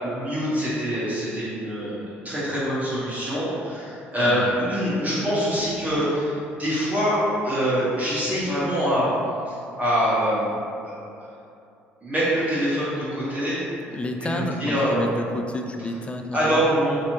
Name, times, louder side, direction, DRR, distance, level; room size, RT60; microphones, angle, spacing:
voice 1, 0.0-9.1 9.5-10.5 10.8-11.0 12.0-13.6 14.2-15.0 16.3-16.9, equal, 25° right, -11 dB, 1.4 m, -24 dB
voice 2, 4.2-4.6 13.9-16.7, left 1 dB, 20° left, 4 dB, 0.3 m, -30 dB
3.1 x 2.8 x 3.0 m, 2.6 s
hypercardioid pair, 55°, 7 cm